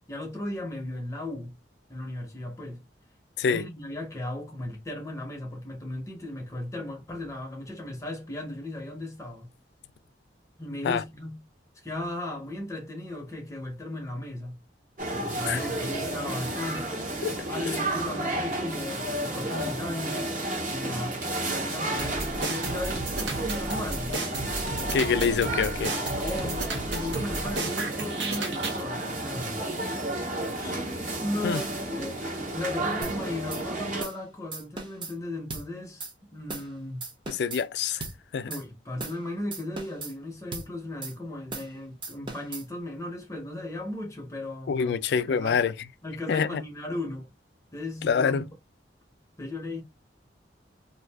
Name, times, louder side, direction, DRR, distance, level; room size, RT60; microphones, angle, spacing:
voice 1, 0.0-1.6 1.9-2.8 3.5-9.5 10.6-11.4 11.7-14.6 15.1-16.9 17.5-20.3 20.7-24.2 26.1-30.0 30.6-30.9 31.2-37.0 38.5-45.6 46.0-47.3 47.7-48.5 49.4-49.8, left 1 dB, 15° left, 0.7 m, -36 dB
sound 1, 15.0-34.0, right 1 dB, 45° right, 1.0 m, -32 dB
sound 2, 22.0-28.8, right 3 dB, 80° right, 0.7 m, -33 dB
voice 2, 24.9-25.9 31.4-31.6 37.3-38.0 38.3-38.5 44.7-45.7 46.3-46.6 48.0-48.5, left 6 dB, 65° left, 0.3 m, -26 dB
sound 3, 33.0-33.2 33.5-33.6 34.0-34.2 34.5-35.1 35.5-35.7 36.0-36.1 36.5-36.7 37.0-37.6 38.0-38.2 38.5-38.6 39.0-39.2 39.5-40.1 40.5-40.7 41.0-41.1 41.5-41.7 42.0-42.6, right 3 dB, 25° right, 0.7 m, -37 dB
2.6 x 2.5 x 3.3 m
head